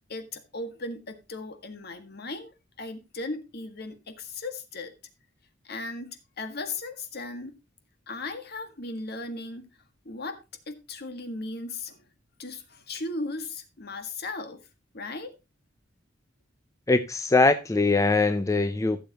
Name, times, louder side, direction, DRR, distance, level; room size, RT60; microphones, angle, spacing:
voice 1, 0.1-4.9 5.6-7.5 8.1-9.7 10.0-10.4 10.7-12.0 12.4-14.6 14.9-15.3, left 2 dB, 55° left, 1.7 m, -37 dB
voice 2, 16.9-19.0, left 3 dB, 15° left, 0.5 m, -22 dB
15.5 x 6.9 x 2.9 m
head